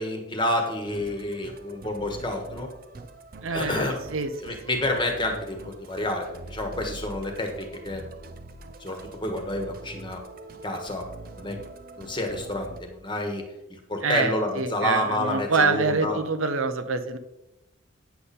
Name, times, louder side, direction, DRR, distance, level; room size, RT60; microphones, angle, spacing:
voice 1, 0.0-2.7 3.5-4.0 4.4-8.0 8.8-10.2 10.6-11.0 11.4-11.6 12.0-13.4 13.9-16.2, left 1 dB, 25° left, 3 dB, 1.3 m, -29 dB
Musical instrument, 0.8-12.8, right 2 dB, 45° right, 0.7 m, -44 dB
voice 2, 3.4-4.3 4.7-4.8 14.0-17.2, right 4 dB, 85° right, 8 dB, 0.9 m, -26 dB
9.5 x 6.9 x 4.2 m, 0.94 s
head